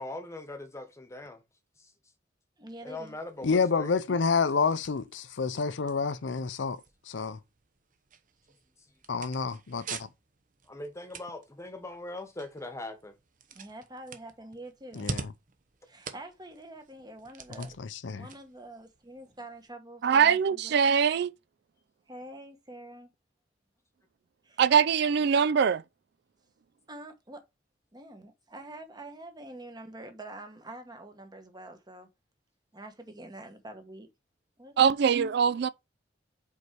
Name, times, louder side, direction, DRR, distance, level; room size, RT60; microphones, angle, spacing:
voice 1, 0.0-1.4 1.8-1.9 2.8-3.9 8.8-8.9 10.6-13.2, left 2 dB, 15° left, 1.1 m, -41 dB
voice 2, 2.6-3.2 13.5-15.2 15.8-17.7 18.2-20.7 22.1-23.1 24.4-24.6 26.9-27.4 27.9-32.1 32.7-34.1 34.6-35.1, right 1 dB, 20° right, 1.1 m, -46 dB
sound 1, 2.7-19.7, right 4 dB, 45° right, 0.8 m, -47 dB
voice 3, 3.4-6.8 7.1-7.4 9.1-10.0 14.9-15.3 17.6-18.3, left 5 dB, 70° left, 0.6 m, -29 dB
voice 4, 20.0-21.3 24.6-25.8 34.8-35.7, right 7 dB, 60° right, 0.4 m, -22 dB
5.3 x 4.7 x 4.6 m
head